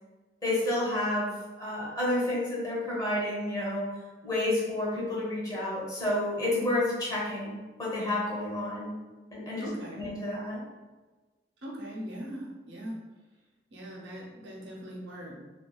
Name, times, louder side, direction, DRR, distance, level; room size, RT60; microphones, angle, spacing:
voice 1, 0.4-3.9 4.2-8.9 9.3-9.7 10.0-10.6, left 1 dB, 20° left, -5 dB, 0.8 m, -30 dB
voice 2, 9.6-10.1 11.6-13.0 13.7-15.4, equal, 85° right, -3 dB, 0.7 m, -40 dB
3.0 x 2.3 x 2.3 m, 1.2 s
head